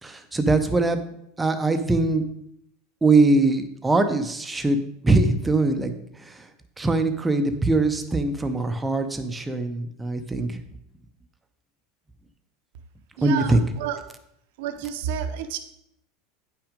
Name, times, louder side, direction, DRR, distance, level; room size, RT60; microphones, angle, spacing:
voice 1, 0.0-1.0 1.4-2.2 3.0-6.5 6.8-10.6 13.2-13.6, right 2 dB, 10° right, 7 dB, 0.6 m, -22 dB
voice 2, 13.2-14.0 14.6-15.6, right 8 dB, 65° right, 7 dB, 0.8 m, -30 dB
9.1 x 5.9 x 5.1 m, 0.76 s
supercardioid pair, 175°, 0 cm